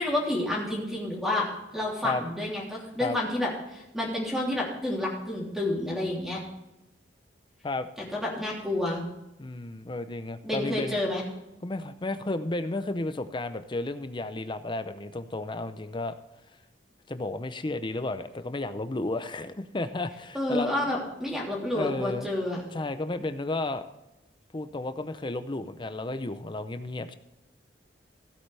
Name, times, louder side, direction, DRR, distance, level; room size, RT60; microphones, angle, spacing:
voice 1, 0.0-1.5 1.7-6.4 8.1-9.0 10.4-11.2 20.3-22.6, left 1 dB, ahead, -3 dB, 3.1 m, -29 dB
voice 2, 9.4-11.0 11.6-16.2 17.1-20.7 21.7-22.3 22.7-23.9 24.5-27.1, left 2 dB, 25° left, 11 dB, 0.6 m, -32 dB
16.0 x 8.6 x 3.4 m, 0.95 s
head